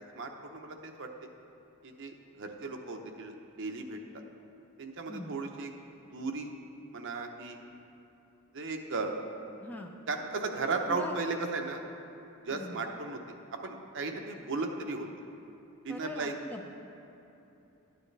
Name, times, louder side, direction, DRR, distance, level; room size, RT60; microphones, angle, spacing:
voice 1, 0.1-1.1 1.8-4.2 4.8-5.7 6.1-6.5 6.9-7.6 8.5-9.1 10.1-11.9 12.4-15.1 15.8-16.3, right 3 dB, 60° right, 4 dB, 0.8 m, -36 dB
voice 2, 9.6-9.9 10.9-11.2 12.5-12.8 15.9-16.7, left 1 dB, 10° left, 2 dB, 0.5 m, -42 dB
12.0 x 9.6 x 3.3 m, 2.9 s
head